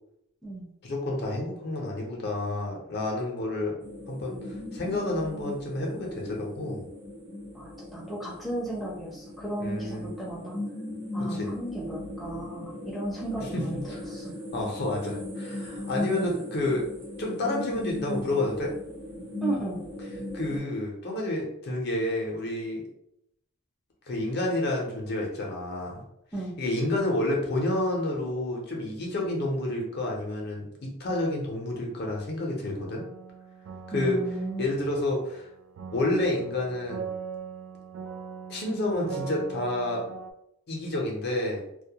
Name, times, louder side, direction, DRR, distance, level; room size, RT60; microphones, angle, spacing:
voice 1, 0.8-3.7 4.1-6.8 9.6-10.1 11.2-11.5 13.4-14.0 14.5-16.8 17.2-18.7 20.3-22.8 24.1-26.0 26.6-33.0 33.9-34.2 34.6-35.5 35.9-37.1 38.5-40.0 40.7-41.6, left 1 dB, 55° left, -1 dB, 0.6 m, -29 dB
sound 1, 3.8-20.6, left 1 dB, 70° right, 0.9 m, -38 dB
voice 2, 7.5-10.6 11.1-13.8 14.1-14.3 16.0-16.2 19.4-19.8 26.3-26.6 33.9-34.6 38.9-39.0, right 2 dB, ahead, -5 dB, 0.5 m, -34 dB
sound 2, 32.9-40.3, right 6 dB, 85° right, 0.3 m, -41 dB
2.2 x 2.1 x 2.7 m, 0.77 s
head